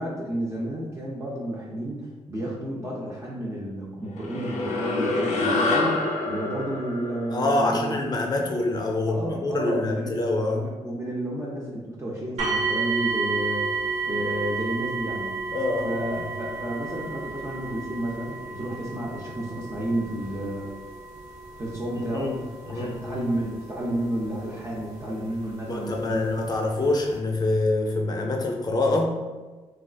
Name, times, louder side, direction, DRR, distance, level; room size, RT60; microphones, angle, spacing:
voice 1, 0.0-8.0 9.1-15.3 15.8-20.7 21.6-26.4, right 1 dB, 25° right, -5 dB, 0.5 m, -31 dB
sound 1, 4.2-8.8, left 2 dB, 80° left, 0.5 m, -27 dB
voice 2, 7.3-10.6 15.5-15.9 22.1-23.1 25.7-29.2, left 2 dB, 35° left, 1 dB, 0.5 m, -25 dB
sound 2, 12.4-25.3 26.1-26.2 26.8-26.9, right 4 dB, 70° right, 0.7 m, -32 dB
3.4 x 2.4 x 2.4 m, 1.3 s
cardioid pair, 95°, 12 cm